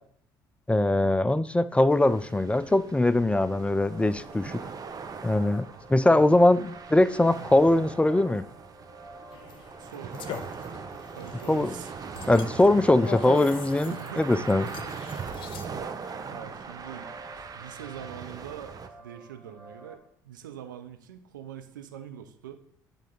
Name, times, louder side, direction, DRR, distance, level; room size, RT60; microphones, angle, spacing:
voice 1, 0.7-4.6 5.2-8.4 11.5-11.7 12.3-14.6, left 1 dB, 10° left, 14 dB, 0.4 m, -22 dB
sound 1, 1.9-18.9, right 5 dB, 35° right, 0.8 m, -40 dB
sound 2, 3.9-20.0, right 2 dB, 20° right, 2.6 m, -50 dB
sound 3, 9.3-15.6, left 8 dB, 55° left, 0.8 m, -41 dB
voice 2, 9.8-10.3 11.2-11.9 13.8-14.7 15.4-15.7 16.3-22.6, right 9 dB, 85° right, 7 dB, 0.6 m, -43 dB
9.9 x 3.4 x 3.9 m, 0.68 s
hypercardioid pair, 55°, 10 cm